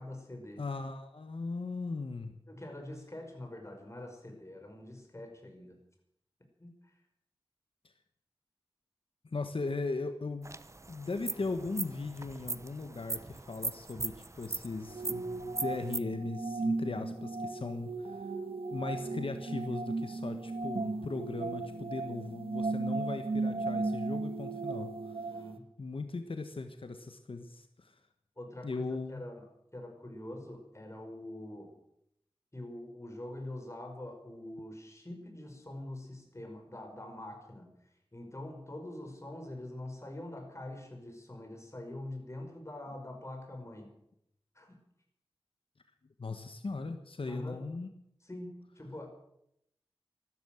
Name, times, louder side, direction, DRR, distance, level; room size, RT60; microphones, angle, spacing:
voice 1, 0.0-0.6 2.5-5.8 6.6-6.9 24.7-25.7 28.4-31.8 32.5-37.7 38.1-43.9 44.6-44.8 47.3-47.6 48.2-49.1, left 1 dB, 30° left, 3 dB, 5.3 m, -45 dB
voice 2, 0.6-2.3 9.2-10.5 10.9-18.2 18.7-24.9 25.2-25.3 25.8-27.9 28.6-29.2 46.2-47.9, left 3 dB, 70° left, 7 dB, 1.3 m, -38 dB
sound 1, 10.4-16.0, right 2 dB, 30° right, 0.7 m, -40 dB
sound 2, 14.9-25.6, right 3 dB, 75° right, 1.3 m, -36 dB
14.5 x 12.5 x 7.7 m, 0.76 s
wide cardioid pair, 60°, 10 cm